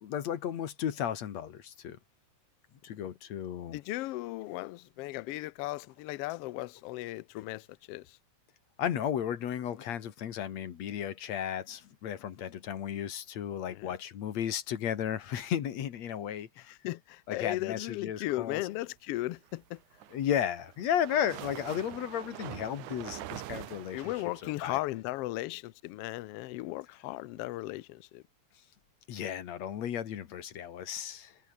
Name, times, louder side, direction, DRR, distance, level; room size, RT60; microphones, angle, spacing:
voice 1, 0.0-2.0 2.8-3.8 8.8-16.7 17.3-18.6 20.1-24.1 24.4-24.8 29.1-31.4, left 9 dB, 60° left, 2.7 m, -34 dB
voice 2, 3.7-8.2 13.7-14.0 16.6-19.8 23.9-28.2, left 18 dB, 85° left, 1.3 m, -36 dB
sound 1, 19.8-24.9, right 14 dB, 75° right, 2.5 m, -44 dB
omnidirectional pair, 3.6 m